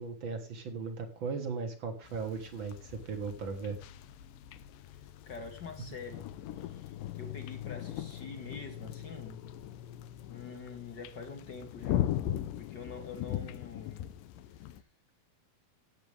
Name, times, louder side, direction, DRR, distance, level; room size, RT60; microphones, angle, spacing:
voice 1, 0.0-3.8, right 5 dB, 50° right, 6 dB, 1.4 m, -37 dB
sound 1, 2.0-14.8, left 12 dB, 75° left, 2.1 m, -39 dB
voice 2, 5.3-9.4 10.3-12.1 12.6-14.1 14.6-14.8, left 4 dB, 55° left, 5 dB, 1.2 m, -46 dB
17.5 x 7.9 x 3.4 m, 0.40 s
omnidirectional pair, 4.4 m